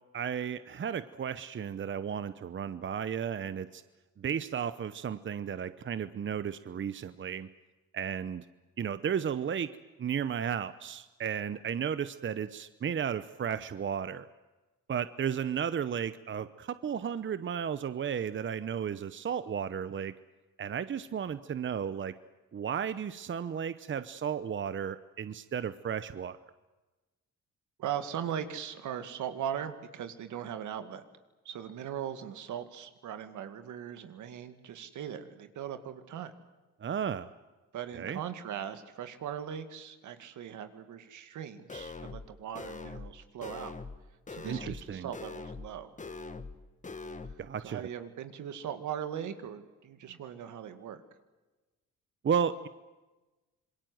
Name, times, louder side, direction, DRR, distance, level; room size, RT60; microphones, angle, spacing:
voice 1, 0.1-3.8 4.2-7.5 7.9-8.4 8.8-9.7 10.0-14.3 14.9-20.1 20.6-22.1 22.5-26.4 36.8-37.3 37.9-38.2 44.4-45.1 47.4-47.8 52.2-52.7, right 8 dB, 40° right, 13 dB, 0.9 m, -34 dB
voice 2, 27.8-31.0 31.4-36.3 37.7-43.7 44.3-45.9 47.3-47.4 47.6-51.0, right 9 dB, 75° right, 9 dB, 2.2 m, -39 dB
sound 1, 41.7-42.3 42.6-43.1 43.4-44.0 44.3-44.8 45.1-45.7 46.0-46.6 46.8-47.3, left 4 dB, 25° left, 1.6 m, -42 dB
26.5 x 22.0 x 7.9 m, 1.2 s
cardioid pair, 90°, 30 cm